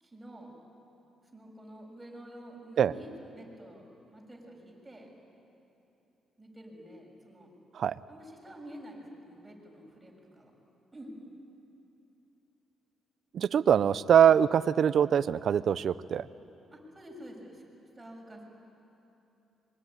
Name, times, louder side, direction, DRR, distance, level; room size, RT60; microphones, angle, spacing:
voice 1, 0.0-0.5 1.3-3.8 4.1-5.1 6.4-7.5 8.1-10.5 10.9-11.2 16.7-17.6 18.0-18.4, right 1 dB, 10° right, -1 dB, 7.1 m, -48 dB
voice 2, 13.3-16.3, right 9 dB, 60° right, 16 dB, 0.7 m, -23 dB
25.0 x 23.5 x 9.9 m, 2.9 s
cardioid pair, 90°, 0 cm